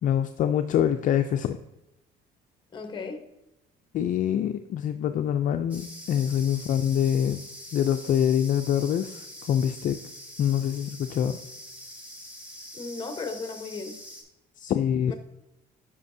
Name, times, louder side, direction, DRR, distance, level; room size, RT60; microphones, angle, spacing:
voice 1, 0.0-1.6 3.9-7.4 7.7-10.0 10.4-11.4 14.6-15.1, left 9 dB, 50° left, 8 dB, 0.4 m, -25 dB
voice 2, 2.7-3.3 12.7-14.0 15.1-15.2, left 4 dB, 25° left, 7 dB, 1.1 m, -35 dB
sound 1, 5.7-14.2, equal, 10° right, 1.8 m, -44 dB
9.7 x 5.5 x 2.7 m, 0.93 s
cardioid pair, 110°, 17 cm